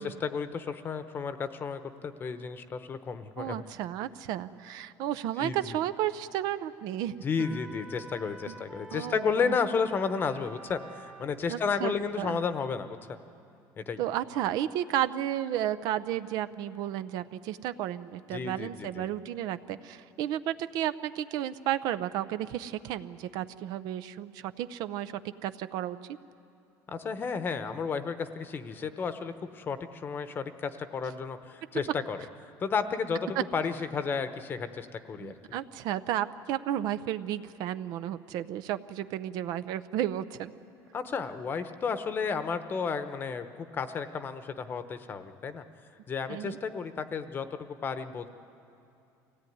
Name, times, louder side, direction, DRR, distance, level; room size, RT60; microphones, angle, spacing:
voice 1, 0.0-3.6 5.4-5.8 7.2-13.0 13.8-14.0 18.3-19.1 26.9-32.2 32.4-35.3 40.9-45.6 46.1-48.3, left 5 dB, 30° left, 10 dB, 0.9 m, -32 dB
voice 2, 3.4-7.1 8.5-8.6 8.9-9.6 11.5-12.4 14.0-25.1 25.4-26.0 35.2-40.5 46.3-46.6, right 12 dB, 65° right, 13 dB, 0.6 m, -33 dB
sound 1, 7.4-11.3, right 1 dB, 10° right, 0.8 m, -48 dB
24.0 x 17.0 x 9.4 m, 2.7 s
cardioid pair, 140°, 7 cm